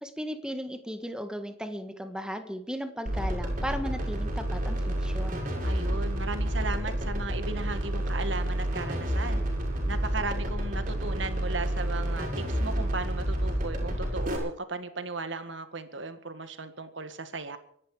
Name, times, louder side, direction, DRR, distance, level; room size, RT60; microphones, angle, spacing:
voice 1, 0.0-5.4, equal, 5° right, 1.6 m, -36 dB
sound 1, 3.1-14.4, right 1 dB, 40° right, 6.0 m, -29 dB
voice 2, 5.6-9.4 9.9-17.6, right 3 dB, 65° right, 1.8 m, -36 dB
25.0 x 11.0 x 5.0 m
head